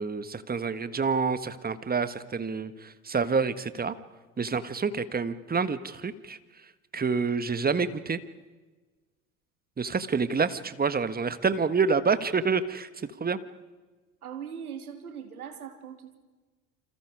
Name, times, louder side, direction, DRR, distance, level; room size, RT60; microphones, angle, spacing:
voice 1, 0.0-3.9 4.4-6.4 6.9-8.2 9.8-12.9 13.2-13.4, right 5 dB, 20° right, 12 dB, 1.6 m, -27 dB
voice 2, 14.2-16.2, right 8 dB, 85° right, 6 dB, 2.8 m, -40 dB
29.0 x 26.5 x 4.9 m, 1.3 s
hypercardioid pair, 70°, 43 cm